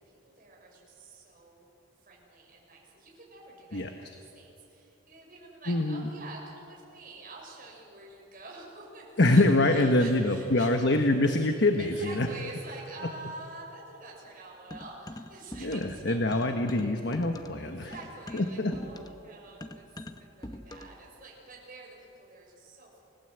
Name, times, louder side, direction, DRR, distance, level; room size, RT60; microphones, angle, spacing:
voice 1, 0.2-1.7 2.0-10.7 11.7-16.5 17.5-23.0, right 3 dB, 40° right, -3 dB, 6.6 m, -47 dB
voice 2, 5.7-6.1 9.2-12.3 13.0-13.1 15.6-17.9 18.3-18.8, left 2 dB, 55° left, 5 dB, 1.2 m, -25 dB
sound 1, 14.7-16.0 16.3-21.0, left 1 dB, 20° left, 0.9 m, -43 dB
29.0 x 16.5 x 8.0 m, 2.9 s
head